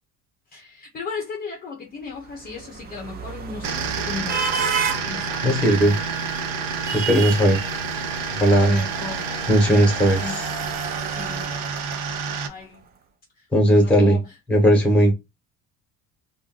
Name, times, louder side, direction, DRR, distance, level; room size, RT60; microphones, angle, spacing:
voice 1, 0.5-4.6 5.0-5.5 5.9-6.1 7.0-7.2 8.5-9.3 10.1-10.5 11.1-11.6 12.5-12.9 13.4-13.5 13.7-14.3, left 4 dB, 30° left, 0.5 m, -35 dB
sound 1, 2.2-12.5, right 6 dB, 30° right, 0.4 m, -33 dB
sound 2, 3.6-12.5, right 5 dB, 85° right, 0.9 m, -29 dB
voice 2, 5.4-6.0 6.9-7.7 8.3-8.8 9.5-10.4 13.5-14.2 14.5-15.1, equal, 5° left, 0.9 m, -17 dB
2.5 x 2.3 x 3.5 m
cardioid pair, 180°, 33 cm